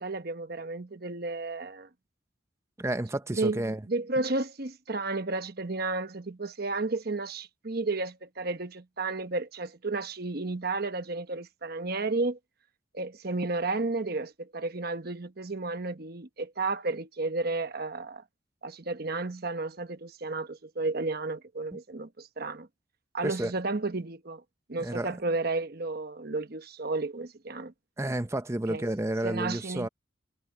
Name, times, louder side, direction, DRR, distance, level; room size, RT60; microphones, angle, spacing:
voice 1, 0.0-1.9 3.3-12.4 12.9-18.2 18.6-22.7 23.1-24.4 24.7-27.7 28.7-28.9 29.2-29.9, right 3 dB, 50° right, 1.1 m, -32 dB
voice 2, 2.8-3.8 23.2-23.5 24.8-25.2 28.0-29.9, right 1 dB, 15° right, 0.6 m, -31 dB
head